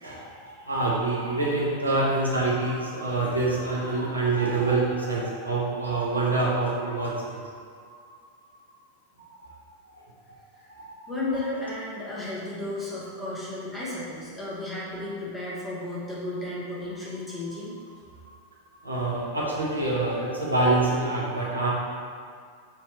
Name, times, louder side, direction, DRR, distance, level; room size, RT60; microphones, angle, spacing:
voice 1, 0.0-7.4 9.4-9.5 10.7-10.9 18.8-21.7, right 2 dB, 80° right, -5 dB, 0.8 m, -26 dB
voice 2, 11.1-17.7, left 2 dB, 10° left, -8 dB, 1.3 m, -33 dB
5.4 x 2.8 x 3.1 m, 2.1 s
figure-of-eight pair, 90°, 0 cm